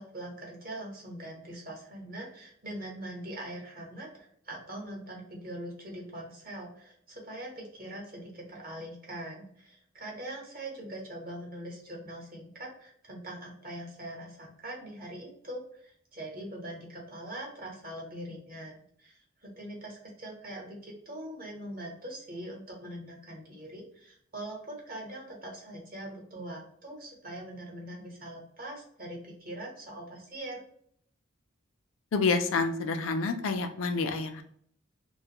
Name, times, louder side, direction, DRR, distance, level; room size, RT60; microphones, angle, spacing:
voice 1, 0.0-18.7 19.0-30.7, right 1 dB, 45° right, -2 dB, 1.0 m, -42 dB
voice 2, 32.1-34.4, left 4 dB, 80° left, 7 dB, 0.4 m, -28 dB
2.5 x 2.3 x 2.8 m, 0.64 s
head